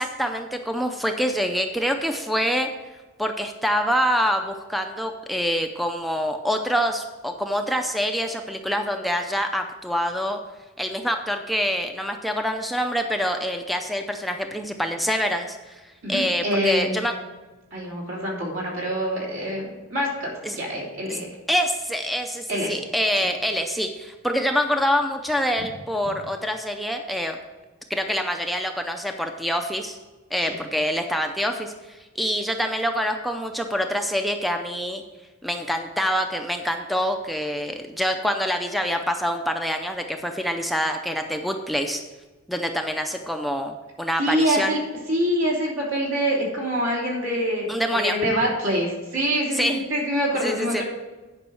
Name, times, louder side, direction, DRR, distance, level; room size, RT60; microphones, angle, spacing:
voice 1, 0.0-2.7 3.2-10.4 10.8-15.8 16.1-17.1 20.4-20.6 21.1-21.2 21.5-27.4 27.9-30.0 30.3-35.0 35.4-42.0 42.5-44.7 47.7-48.2 49.5-49.8 50.4-50.8, equal, ahead, 5 dB, 0.5 m, -26 dB
voice 2, 16.0-17.1 17.7-21.3 22.5-22.7 30.5-30.6 44.2-44.8 45.1-47.7 47.9-50.8, equal, 70° right, -3 dB, 3.2 m, -25 dB
9.9 x 5.3 x 6.3 m, 1.2 s
head